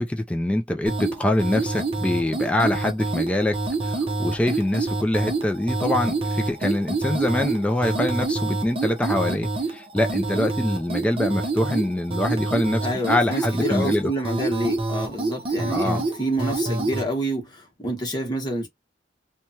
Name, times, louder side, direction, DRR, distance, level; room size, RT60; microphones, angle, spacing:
voice 1, 0.0-14.1 15.7-16.0, left 1 dB, 5° left, 0.3 m, -24 dB
sound 1, 0.9-17.1, right 3 dB, 30° right, 0.7 m, -27 dB
voice 2, 12.8-18.7, right 1 dB, 25° left, 1.1 m, -28 dB
3.0 x 2.2 x 2.7 m
head